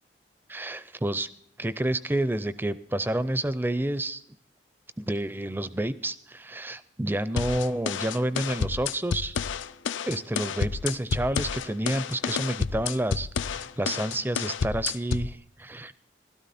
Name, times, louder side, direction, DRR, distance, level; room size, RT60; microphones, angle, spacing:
voice 1, 0.5-1.3 1.6-4.2 5.0-9.5 10.1-15.9, right 1 dB, 10° right, 15 dB, 0.4 m, -29 dB
sound 1, 7.4-15.4, left 6 dB, 85° left, 0.5 m, -30 dB
16.5 x 12.5 x 4.2 m, 0.69 s
head